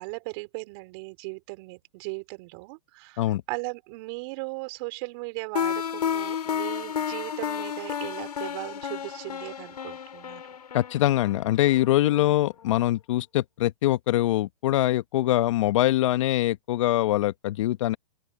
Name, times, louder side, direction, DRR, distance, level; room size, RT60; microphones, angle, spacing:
voice 1, 0.0-10.4 12.1-12.4, right 28 dB, 40° right, 4.5 m, -37 dB
sound 1, 5.6-12.3, left 8 dB, 80° left, 5.5 m, -32 dB
voice 2, 10.7-18.0, left 14 dB, 50° left, 1.5 m, -23 dB
open air
hypercardioid pair, 135°, 20 cm